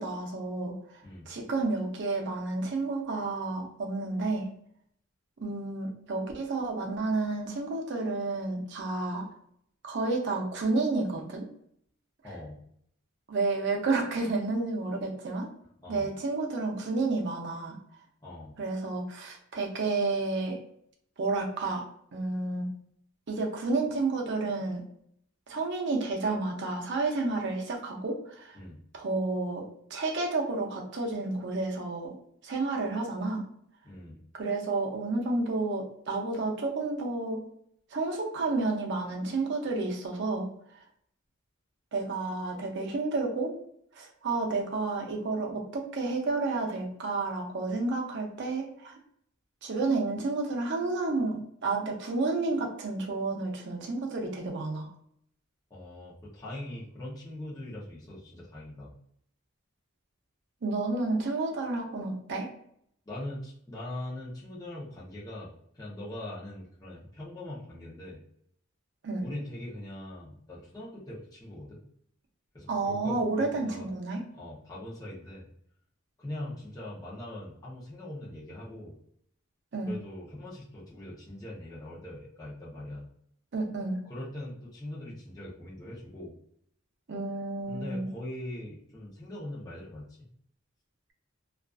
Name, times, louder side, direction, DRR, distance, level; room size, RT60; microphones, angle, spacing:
voice 1, 0.0-4.5 5.4-9.3 9.8-11.5 13.3-15.5 15.9-17.8 18.6-20.6 21.2-22.7 23.3-24.8 25.5-28.6 28.9-32.2 32.4-33.5 34.3-37.4 37.9-40.8 41.9-43.5 43.9-49.0 49.6-54.9 60.6-62.5 69.0-69.2 72.7-74.2 79.7-79.9 83.5-84.0 87.1-88.1, right 3 dB, 60° right, 2 dB, 0.6 m, -31 dB
voice 2, 12.2-12.6 15.8-16.1 18.2-18.6 28.5-28.8 33.8-34.2 55.7-58.9 63.1-68.2 69.2-71.8 72.5-73.9 74.3-75.5 76.2-79.0 79.9-83.1 84.0-86.4 87.7-90.3, left 1 dB, 20° left, -7 dB, 0.6 m, -41 dB
2.4 x 2.3 x 2.3 m, 0.68 s
head